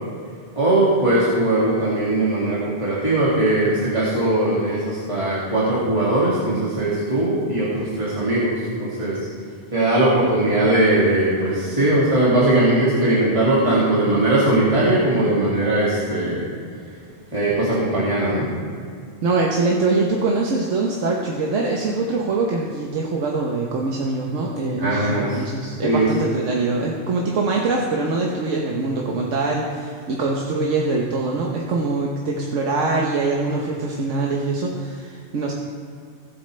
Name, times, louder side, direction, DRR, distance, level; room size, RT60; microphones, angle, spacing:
voice 1, 0.6-9.2 9.7-16.5 17.3-18.5 24.8-25.4 25.8-26.1, right 1 dB, 25° right, -9 dB, 2.3 m, -20 dB
voice 2, 19.2-35.5, right 3 dB, 90° right, -1 dB, 1.4 m, -23 dB
18.0 x 8.0 x 3.3 m, 2.3 s
omnidirectional pair, 1.2 m